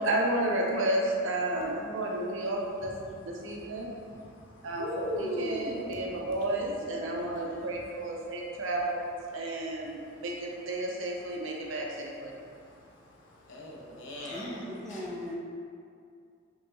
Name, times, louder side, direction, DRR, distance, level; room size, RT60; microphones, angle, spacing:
voice 1, 0.0-2.9 3.2-3.9 4.6-12.3, right 1 dB, 75° right, -1 dB, 0.6 m, -32 dB
voice 2, 3.1-6.2 7.2-7.7 8.2-8.6 9.5-9.7 9.9-10.2 12.3-12.9 13.2-15.0, equal, 70° left, -3 dB, 0.7 m, -40 dB
voice 3, 14.2-15.3, left 1 dB, ahead, -3 dB, 0.4 m, -39 dB
5.3 x 2.3 x 2.9 m, 2.3 s
head